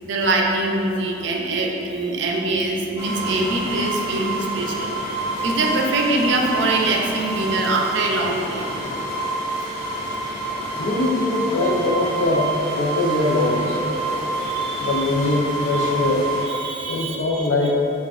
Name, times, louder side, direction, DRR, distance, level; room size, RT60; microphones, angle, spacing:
voice 1, 0.0-4.9 5.4-8.7 14.4-15.1 16.4-17.7, right 2 dB, 70° right, 0 dB, 0.5 m, -23 dB
sound 1, 3.0-16.4, right 2 dB, 5° left, 1.4 m, -27 dB
voice 2, 10.8-13.8 14.8-16.3 16.9-17.7, left 2 dB, 85° left, -2 dB, 0.6 m, -22 dB
6.9 x 2.4 x 2.5 m, 2.9 s
head